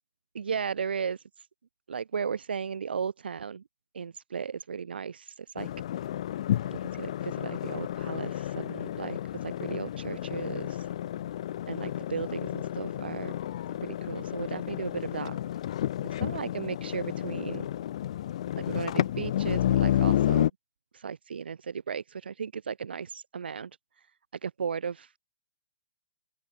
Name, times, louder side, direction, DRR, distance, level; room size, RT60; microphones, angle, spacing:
voice 1, 0.3-1.5 1.9-3.6 3.9-5.7 6.7-10.9 11.7-13.3 13.8-15.4 16.2-17.7 18.6-20.5 20.9-23.7 24.4-25.1, right 6 dB, 75° right, 6.6 m, -35 dB
sound 1, 5.6-20.5, left 11 dB, 35° left, 6.0 m, -31 dB
open air
hypercardioid pair, 175°, 6 cm